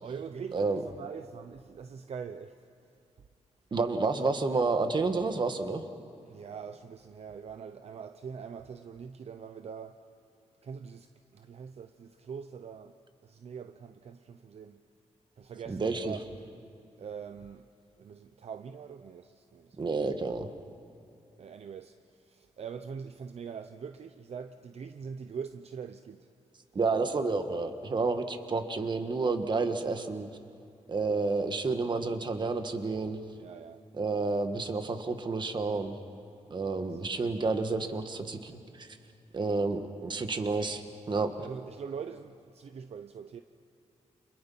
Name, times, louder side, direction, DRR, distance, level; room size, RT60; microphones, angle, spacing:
voice 1, 0.0-2.5 6.3-9.9 10.6-11.1 11.3-12.9 13.3-14.8 15.4-16.2 17.0-17.6 18.0-19.6 21.4-21.9 22.4-26.2 33.4-33.8 36.7-36.8 41.4-43.4, right 6 dB, 60° right, 0.7 m, -43 dB
voice 2, 0.5-0.8 3.7-5.9 15.7-16.2 19.8-20.5 26.7-30.3 30.9-33.2 33.9-36.0 36.5-38.9 39.3-41.5, right 3 dB, 40° right, 1.5 m, -30 dB
30.0 x 27.5 x 5.6 m
wide cardioid pair, 150°, 12 cm